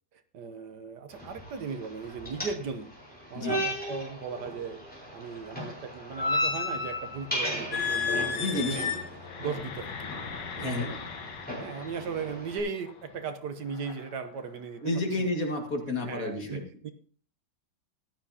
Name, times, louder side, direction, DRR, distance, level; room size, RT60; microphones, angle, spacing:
voice 1, 0.3-2.9 3.3-4.8 5.1-8.9 9.4-10.1 10.5-11.0 11.6-14.8 15.2-15.3 15.9-16.9, right 5 dB, 70° right, 9 dB, 1.5 m, -37 dB
sound 1, 1.1-12.6, left 1 dB, 5° left, 4.2 m, -36 dB
sound 2, 7.7-12.2 12.9-13.1 13.7-14.1, left 6 dB, 75° left, 1.8 m, -34 dB
voice 2, 8.4-9.0 10.6-10.9 14.8-16.6, left 2 dB, 50° left, 2 dB, 2.4 m, -30 dB
15.0 x 12.0 x 2.8 m, 0.44 s
omnidirectional pair, 1.9 m